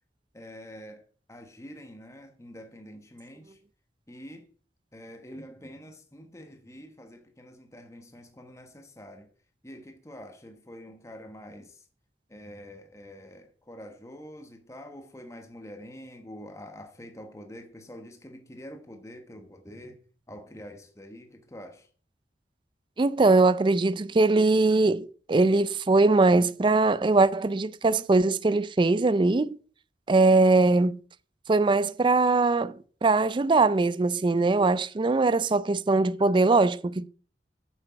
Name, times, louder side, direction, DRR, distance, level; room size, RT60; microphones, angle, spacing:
voice 1, 0.3-3.6 4.1-4.5 4.9-9.3 9.6-11.9 12.3-20.0 20.3-21.9, equal, 15° left, 1.2 m, -46 dB
voice 2, 23.0-29.6 30.1-31.0 31.5-37.1, right 3 dB, 25° right, 0.4 m, -21 dB
9.0 x 7.7 x 5.8 m
head